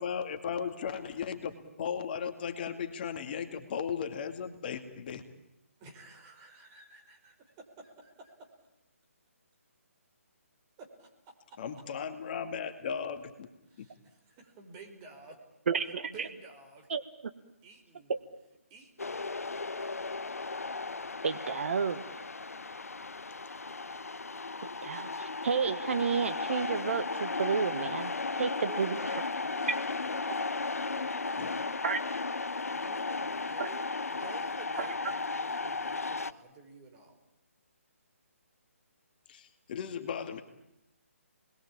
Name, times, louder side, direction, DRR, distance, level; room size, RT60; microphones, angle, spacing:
voice 1, 0.0-5.2 11.6-13.5 13.8-13.9 31.4-31.5 39.3-40.4, left 7 dB, 40° left, 7 dB, 2.3 m, -36 dB
voice 2, 5.8-8.5 10.8-11.1 11.5-11.6 13.7-15.4 16.0-16.9 17.6-18.1 18.7-19.2 28.7-30.3 30.8-31.8 32.7-37.2, right 4 dB, 25° right, 3 dB, 5.0 m, -52 dB
voice 3, 15.7-16.3 16.9-17.0 18.1-18.2 21.2-22.1 24.8-28.9 31.8-32.0 33.6-33.7 34.8-34.9, right 6 dB, 55° right, 11 dB, 1.5 m, -31 dB
sound 1, 19.0-36.3, left 3 dB, 80° left, 1.0 m, -35 dB
30.0 x 21.5 x 8.8 m, 0.89 s
figure-of-eight pair, 145°, 8 cm